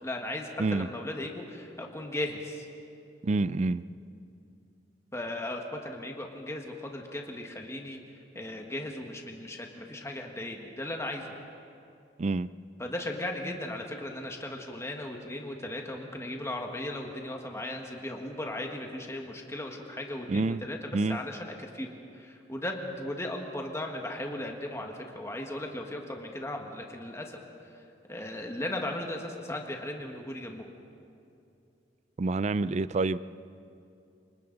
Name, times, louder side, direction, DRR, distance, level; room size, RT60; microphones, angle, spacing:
voice 1, 0.0-2.7 5.1-8.0 8.3-11.3 12.8-27.4 27.7-27.8 28.1-30.7, left 1 dB, 15° left, 1.6 m, -37 dB
voice 2, 3.2-3.8 12.2-12.5 20.3-20.6 20.9-21.2 32.2-33.2, right 3 dB, 40° right, 0.4 m, -27 dB
28.0 x 25.0 x 4.0 m
head